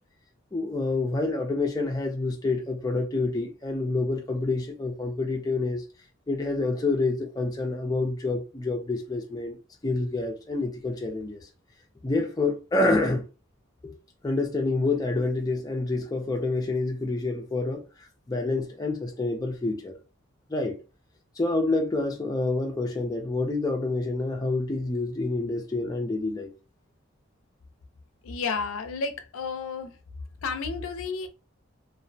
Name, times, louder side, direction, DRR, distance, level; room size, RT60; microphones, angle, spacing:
voice 1, 0.5-5.8 6.3-9.6 9.8-11.4 12.0-13.2 13.8-13.9 14.2-17.8 18.3-19.9 20.5-20.7 21.4-26.5, left 2 dB, 20° left, 0.3 m, -27 dB
voice 2, 28.2-30.0 30.4-31.3, left 4 dB, 80° left, 0.4 m, -31 dB
2.4 x 2.0 x 2.6 m
head